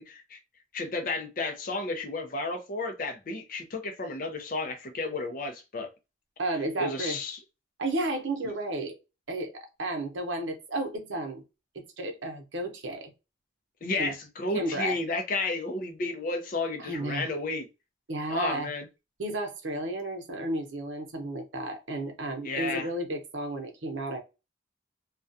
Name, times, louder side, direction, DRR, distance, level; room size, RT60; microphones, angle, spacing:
voice 1, 0.1-0.4 0.7-5.9 6.8-7.4 13.8-17.7 18.3-18.9 22.4-22.9, left 2 dB, 45° left, 0.5 m, -32 dB
voice 2, 6.4-7.2 7.8-8.9 9.3-9.5 9.8-11.4 11.7-13.1 14.0-14.1 14.5-15.0 16.8-17.3 18.1-18.7 19.2-24.2, right 1 dB, 85° right, 0.7 m, -32 dB
2.3 x 2.2 x 2.6 m
head